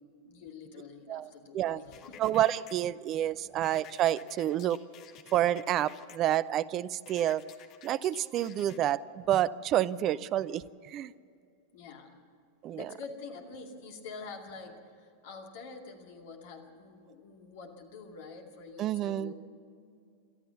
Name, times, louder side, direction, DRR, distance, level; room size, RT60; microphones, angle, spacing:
voice 1, 0.0-2.2 3.3-3.5 11.7-12.2 12.7-19.3, left 4 dB, 55° left, 3 dB, 2.5 m, -46 dB
voice 2, 1.1-1.8 2.2-4.8 5.3-7.4 7.8-11.1 12.6-12.9 18.8-19.3, right 12 dB, 35° right, 19 dB, 0.5 m, -29 dB
sound 1, 1.9-2.7 3.6-6.2 7.1-8.8, left 9 dB, 35° left, 1.5 m, -52 dB
28.5 x 13.5 x 7.1 m, 2.4 s
figure-of-eight pair, 90°, 0 cm